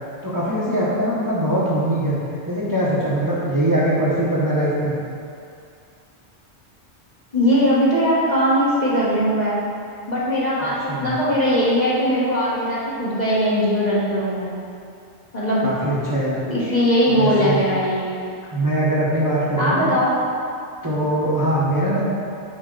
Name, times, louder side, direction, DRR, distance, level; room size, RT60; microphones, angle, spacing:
voice 1, 0.2-2.1 2.4-4.9 10.6-11.1 15.6-16.4 17.2-17.6 18.5-19.9 20.8-22.0, right 1 dB, 20° right, -8 dB, 1.2 m, -22 dB
voice 2, 7.3-9.6 10.1-14.5 15.3-15.7 16.5-18.3 19.6-20.1, equal, 40° left, -8 dB, 1.7 m, -20 dB
8.1 x 5.7 x 4.0 m, 2.4 s
omnidirectional pair, 1.2 m